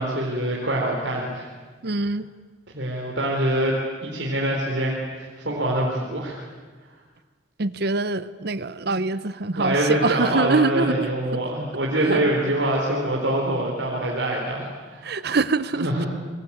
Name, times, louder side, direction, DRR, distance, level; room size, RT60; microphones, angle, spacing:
voice 1, 0.0-1.5 2.7-3.8 4.0-6.4 9.6-15.0 15.8-16.1, right 1 dB, 75° right, -2 dB, 4.1 m, -25 dB
voice 2, 1.8-2.3 7.6-11.4 12.1-12.2 15.0-16.1, right 3 dB, 60° right, 15 dB, 0.8 m, -24 dB
27.0 x 22.5 x 8.8 m, 1.4 s
head